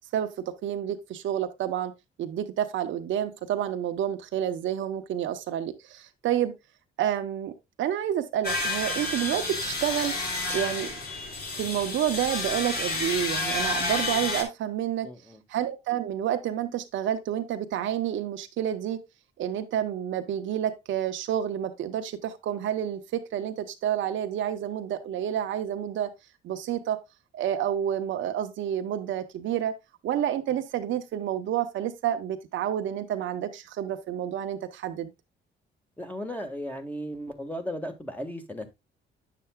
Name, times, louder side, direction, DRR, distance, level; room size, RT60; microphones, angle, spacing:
voice 1, 0.1-1.9 2.2-6.5 7.0-7.5 7.8-10.1 10.5-10.9 11.6-15.1 15.5-19.0 19.4-26.1 26.4-27.0 27.3-29.7 30.0-35.1, right 10 dB, 75° right, 0.9 m, -29 dB
sound 1, 8.4-14.4, left 3 dB, 50° left, 2.7 m, -30 dB
voice 2, 15.0-15.4 36.0-38.7, equal, 10° left, 1.6 m, -36 dB
9.1 x 6.8 x 2.2 m
cardioid pair, 90°, 20 cm